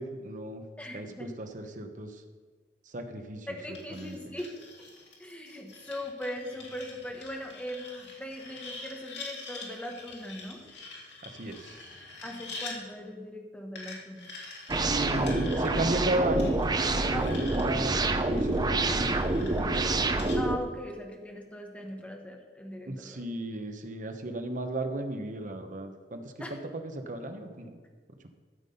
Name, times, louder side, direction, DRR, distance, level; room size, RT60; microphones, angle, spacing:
voice 1, 0.0-0.6 0.9-2.2 2.9-3.5 3.9-4.3 11.2-11.8 14.9-16.5 16.9-19.8 22.9-26.3 26.7-27.7, right 1 dB, 50° right, 6 dB, 1.1 m, -35 dB
voice 2, 0.8-1.3 3.5-4.6 5.2-10.6 12.2-14.3 17.1-17.5 20.3-23.2 26.4-26.6, equal, 10° left, 2 dB, 1.5 m, -40 dB
sound 1, 3.7-12.8 13.8-20.4, left 3 dB, 85° left, 2.5 m, -45 dB
sound 2, 14.7-20.6, right 2 dB, 25° right, 0.6 m, -27 dB
13.0 x 7.4 x 5.5 m, 1.4 s
head